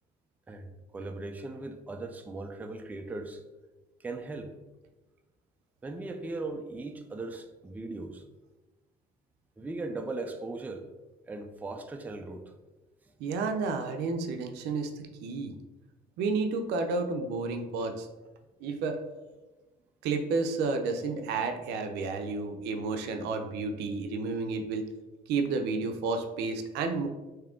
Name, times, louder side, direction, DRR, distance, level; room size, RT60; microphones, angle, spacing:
voice 1, 0.9-3.4 4.0-4.5 5.8-8.2 9.6-10.9 11.3-12.5, right 2 dB, 10° right, 5 dB, 0.3 m, -38 dB
voice 2, 13.2-14.9 15.2-15.5 16.2-18.1 18.6-19.0 20.0-24.8 25.3-27.1, right 4 dB, 90° right, 5 dB, 0.5 m, -31 dB
3.6 x 2.8 x 3.6 m, 1.1 s
cardioid pair, 110°, 17 cm